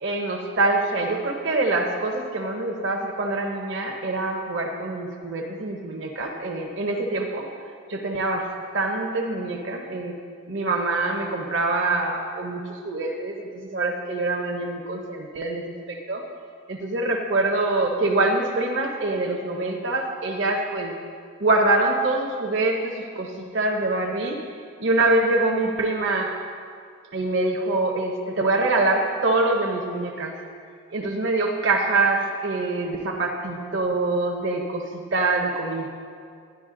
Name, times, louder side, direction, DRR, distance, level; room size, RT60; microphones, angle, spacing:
voice 1, 0.0-7.5 7.9-10.2 10.5-16.2 16.7-20.9 21.4-24.4 24.8-26.4 27.1-30.4 30.9-35.9, right 2 dB, 60° right, 1 dB, 0.8 m, -25 dB
11.5 x 10.5 x 3.8 m, 2.2 s
head